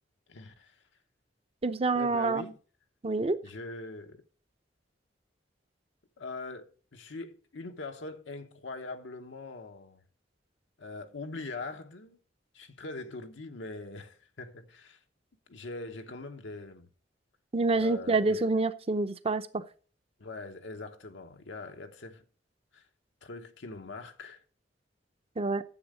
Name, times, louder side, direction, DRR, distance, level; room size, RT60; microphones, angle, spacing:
voice 1, 0.3-0.8 1.9-2.6 3.4-4.2 6.2-10.0 10.8-12.2 12.5-15.0 15.5-16.9 17.8-18.5 20.2-22.2 22.7-22.9 23.2-24.4, left 3 dB, 85° left, 0.9 m, -42 dB
voice 2, 1.6-2.4 3.0-3.4 17.5-19.6 25.4-25.6, right 3 dB, 35° right, 0.6 m, -27 dB
10.0 x 7.5 x 4.9 m
head